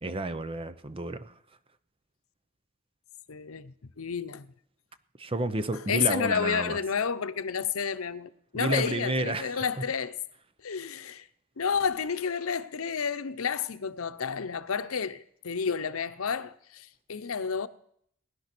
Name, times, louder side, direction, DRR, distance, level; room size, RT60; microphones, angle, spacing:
voice 1, 0.0-1.3 5.2-6.8 8.5-9.9, right 2 dB, 25° right, 0.7 m, -31 dB
voice 2, 3.3-4.5 5.9-10.1 10.6-11.3 11.6-17.7, left 6 dB, 90° left, 0.8 m, -30 dB
19.0 x 11.0 x 6.1 m
head